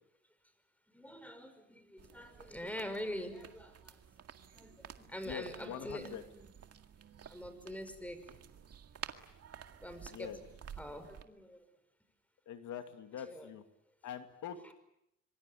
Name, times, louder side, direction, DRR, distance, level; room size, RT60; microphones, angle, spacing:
voice 1, 0.9-4.0 4.5-6.5 7.3-8.3 9.8-10.5 10.8-11.6 13.2-13.5 14.6-14.7, left 1 dB, 5° left, 10 dB, 5.5 m, -45 dB
sound 1, 2.0-11.2, right 8 dB, 55° right, 2.0 m, -52 dB
voice 2, 5.2-6.2 10.1-10.4 12.5-13.6 14.0-14.7, left 9 dB, 75° left, 7 dB, 2.5 m, -44 dB
26.0 x 24.0 x 9.3 m, 0.80 s
cardioid pair, 90°, 30 cm